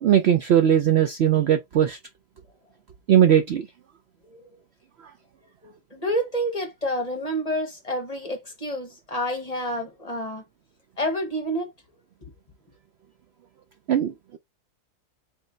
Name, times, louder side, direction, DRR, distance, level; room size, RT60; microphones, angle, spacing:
voice 1, 0.0-2.0 3.1-3.7 13.9-14.4, right 10 dB, 80° right, 0.6 m, -19 dB
voice 2, 5.6-10.4 11.0-11.7 12.2-12.3, equal, 25° left, 1.3 m, -29 dB
3.8 x 3.1 x 3.9 m
omnidirectional pair, 1.7 m